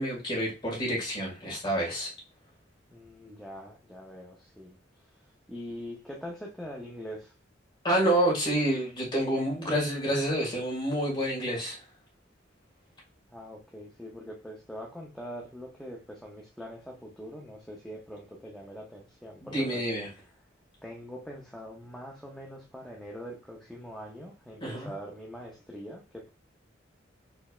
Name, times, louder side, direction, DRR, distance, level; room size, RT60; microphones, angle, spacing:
voice 1, 0.0-2.1 7.8-11.8 19.5-20.1 24.6-24.9, right 1 dB, 25° left, 1.8 m, -28 dB
voice 2, 2.9-4.7 5.5-7.3 13.3-19.8 20.8-26.3, equal, ahead, 0.6 m, -43 dB
4.3 x 3.2 x 2.3 m
head